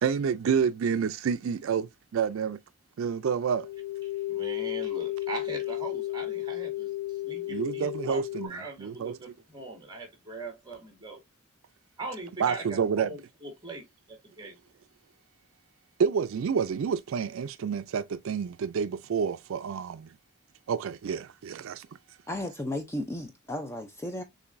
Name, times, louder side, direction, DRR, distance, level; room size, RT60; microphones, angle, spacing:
voice 1, 0.0-2.6 3.0-3.7 7.4-9.2 12.4-13.1 16.0-20.1 20.7-21.9, right 6 dB, 70° right, 0.4 m, -29 dB
sound 1, 3.5-8.5, left 16 dB, 60° left, 0.8 m, -33 dB
voice 2, 4.3-6.9 7.2-11.2 12.0-14.6, right 3 dB, 20° right, 1.8 m, -40 dB
voice 3, 22.3-24.2, left 1 dB, 10° left, 0.5 m, -34 dB
6.7 x 2.6 x 2.5 m
head